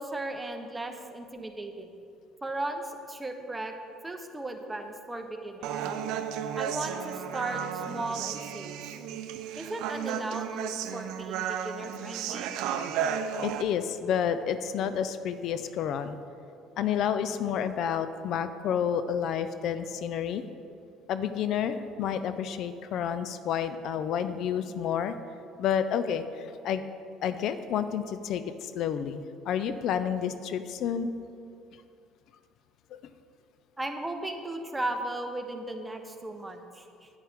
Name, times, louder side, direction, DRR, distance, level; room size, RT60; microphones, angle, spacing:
voice 1, 0.0-1.9 2.4-3.7 4.0-5.8 6.6-8.8 9.6-12.5 33.8-37.1, right 2 dB, 15° right, 5 dB, 0.9 m, -36 dB
Human voice, 5.6-13.6, right 9 dB, 75° right, 0.5 m, -33 dB
voice 2, 10.8-11.1 13.3-16.2 16.8-20.5 21.1-25.2 25.6-26.9 27.2-31.1 32.9-33.0, left 8 dB, 65° left, 11 dB, 0.4 m, -30 dB
9.3 x 8.8 x 3.6 m, 2.5 s
supercardioid pair, 95°, 0 cm